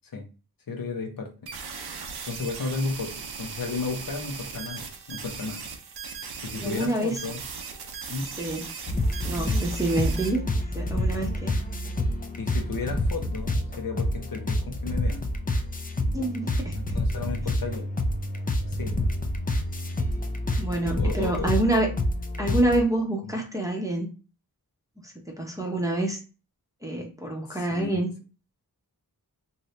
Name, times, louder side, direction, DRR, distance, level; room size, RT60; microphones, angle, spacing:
voice 1, 0.7-1.3 2.3-5.6 6.4-7.4 8.1-8.3 12.4-15.3 16.7-17.9 18.7-19.0 21.0-21.5 23.2-23.3 27.5-28.0, left 4 dB, 65° left, 3 dB, 0.8 m, -33 dB
sound 1, 1.5-10.3, right 5 dB, 90° right, 0.7 m, -38 dB
voice 2, 6.6-7.1 8.4-8.7 9.2-10.4 10.7-11.5 16.1-16.7 20.6-21.9 22.4-24.1 25.4-26.2 26.8-28.1, right 1 dB, 10° right, 0 dB, 0.7 m, -27 dB
sound 2, 8.9-22.8, left 1 dB, 25° left, 0.4 m, -28 dB
2.7 x 2.6 x 3.1 m, 0.34 s
wide cardioid pair, 100°, 37 cm